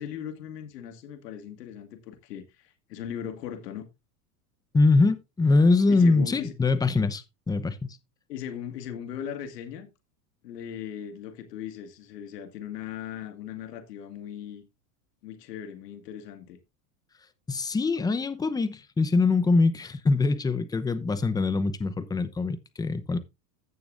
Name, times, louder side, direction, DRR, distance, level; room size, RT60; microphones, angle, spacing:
voice 1, 0.0-3.8 5.9-6.5 8.3-9.9 10.4-14.6 15.2-16.6, left 9 dB, 85° left, 2.0 m, -38 dB
voice 2, 4.7-8.0 17.5-23.2, left 3 dB, 10° left, 0.8 m, -23 dB
15.5 x 6.9 x 2.5 m
supercardioid pair, 130°, 47 cm